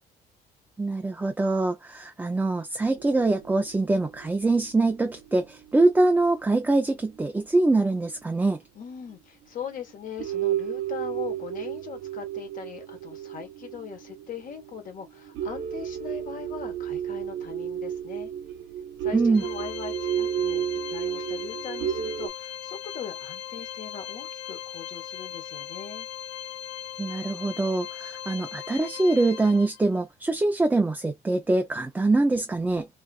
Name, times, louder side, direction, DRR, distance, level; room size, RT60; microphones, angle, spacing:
voice 1, 0.8-8.6 19.1-19.4 27.0-32.9, right 2 dB, 10° right, 0.4 m, -24 dB
sound 1, 3.0-6.9 7.4-7.5 8.5-8.6 9.1-9.2 9.7-9.9 10.2-22.3, right 10 dB, 85° right, 0.6 m, -33 dB
voice 2, 8.7-18.3 19.0-26.1, left 7 dB, 50° left, 1.3 m, -40 dB
Organ, 19.3-30.0, left 11 dB, 85° left, 0.5 m, -39 dB
2.6 x 2.5 x 2.3 m
cardioid pair, 110°, 17 cm